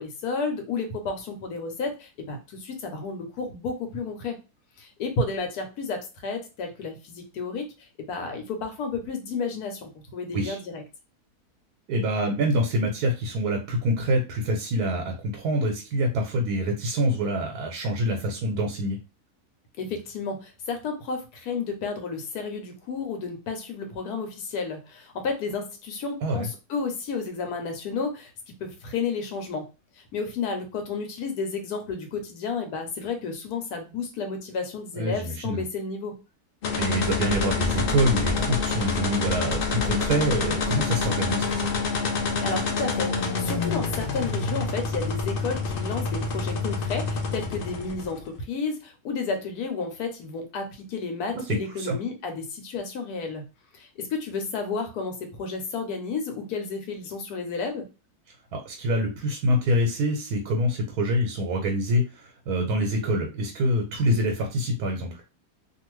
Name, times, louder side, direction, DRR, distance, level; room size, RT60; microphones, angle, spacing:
voice 1, 0.0-4.4 4.8-7.7 8.0-10.8 19.8-29.7 30.1-36.2 42.4-53.4 53.7-57.9, left 4 dB, 85° left, 5 dB, 1.3 m, -32 dB
voice 2, 11.9-19.0 26.2-26.5 35.0-35.6 36.8-41.7 51.3-51.9 58.5-65.2, equal, 80° right, 1 dB, 1.2 m, -26 dB
sound 1, 36.6-48.3, left 4 dB, 60° left, 0.5 m, -27 dB
2.6 x 2.5 x 3.0 m, 0.30 s
omnidirectional pair, 1.6 m